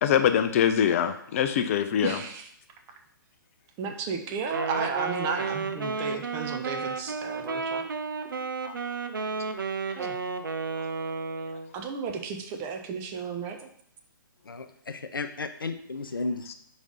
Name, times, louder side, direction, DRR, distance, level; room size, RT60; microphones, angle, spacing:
voice 1, 0.0-2.2 5.8-6.0 8.6-8.8 10.8-10.9 16.5-16.6, left 9 dB, 40° left, 9 dB, 0.5 m, -24 dB
voice 2, 2.0-2.4 3.8-7.8 9.9-10.2 11.7-13.6, right 5 dB, 25° right, 4 dB, 0.7 m, -33 dB
Wind instrument woodwind instrument, 4.4-11.7, right 4 dB, 70° right, 0.6 m, -32 dB
voice 3, 14.4-16.5, left 3 dB, 75° left, 9 dB, 0.6 m, -34 dB
4.9 x 4.2 x 5.0 m, 0.66 s
figure-of-eight pair, 125°, 12 cm